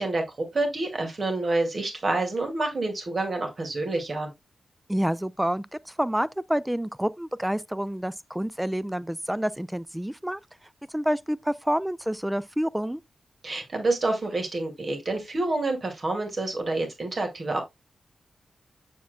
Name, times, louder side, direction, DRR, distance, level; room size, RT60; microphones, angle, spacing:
voice 1, 0.0-4.3 13.4-17.6, right 2 dB, 45° right, 2.2 m, -28 dB
voice 2, 4.9-10.4 10.9-13.0, equal, 5° right, 0.3 m, -28 dB
7.4 x 7.1 x 2.2 m
cardioid pair, 80°, 0 cm